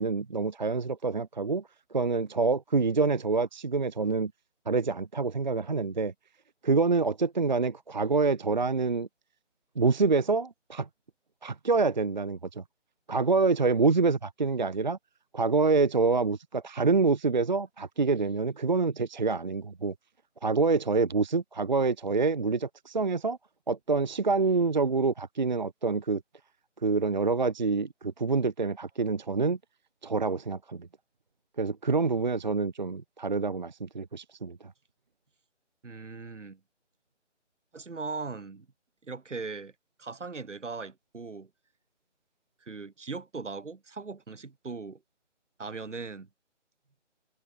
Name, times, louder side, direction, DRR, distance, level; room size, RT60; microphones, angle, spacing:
voice 1, 0.0-1.6 1.9-4.3 4.7-6.1 6.6-9.1 9.8-10.9 11.4-12.6 13.1-15.0 15.3-19.9 20.4-23.4 23.7-26.2 26.8-29.6 30.0-30.9 31.6-34.6, right 4 dB, 40° right, 0.7 m, -26 dB
voice 2, 35.8-36.6 37.7-38.7 39.0-39.7 40.0-41.5 42.6-45.0 45.6-46.3, right 4 dB, 70° right, 2.8 m, -39 dB
figure-of-eight pair, 165°, 37 cm